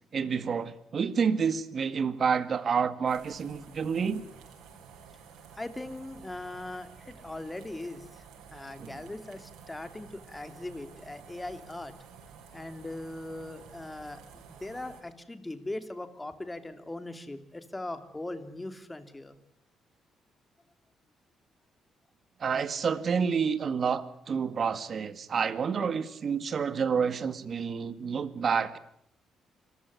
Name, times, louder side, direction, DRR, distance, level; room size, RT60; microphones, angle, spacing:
voice 1, 0.1-4.2 8.8-9.0 22.4-28.8, right 6 dB, 50° right, 13 dB, 1.9 m, -29 dB
sound 1, 3.1-15.0, right 6 dB, 85° right, 6.1 m, -51 dB
voice 2, 5.5-11.9 12.5-19.4, left 2 dB, 15° left, 10 dB, 2.8 m, -40 dB
26.0 x 15.0 x 9.6 m, 0.69 s
cardioid pair, 90°, 0 cm